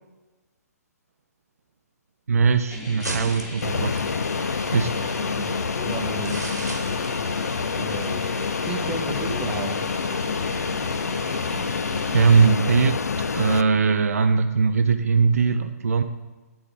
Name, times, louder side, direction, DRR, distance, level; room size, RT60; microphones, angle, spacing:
voice 1, 2.3-4.1 4.7-4.9 12.1-13.0 13.4-16.0, right 5 dB, 60° right, 7 dB, 0.4 m, -20 dB
sound 1, 2.6-8.1, right 2 dB, 80° right, 1.2 m, -38 dB
sound 2, 2.7-12.5, left 2 dB, 25° left, 1.2 m, -38 dB
Fixed-wing aircraft airplane, 3.6-13.6, left 5 dB, 70° left, 0.3 m, -27 dB
voice 2, 5.1-6.4 7.8-8.2 8.6-9.9, right 4 dB, 10° right, 2 dB, 0.7 m, -34 dB
9.8 x 3.5 x 4.9 m, 1.2 s
figure-of-eight pair, 125°, 9 cm